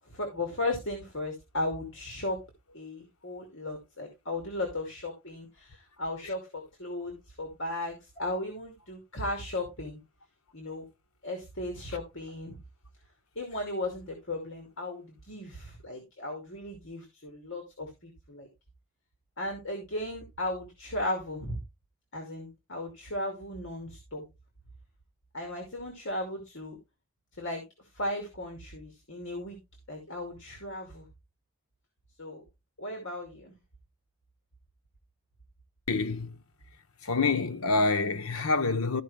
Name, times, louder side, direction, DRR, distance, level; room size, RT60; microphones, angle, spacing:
voice 1, 0.1-2.4 2.7-10.0 10.5-10.8 11.2-12.6 13.4-18.5 19.4-21.6 22.1-24.2 25.3-26.8 27.4-27.6 27.9-29.6 29.9-31.1 32.2-32.4 32.8-33.6, left 1 dB, 55° left, 2.4 m, -36 dB
voice 2, 35.9-36.4 37.0-39.0, left 3 dB, 80° left, 0.9 m, -27 dB
13.5 x 5.3 x 3.4 m
head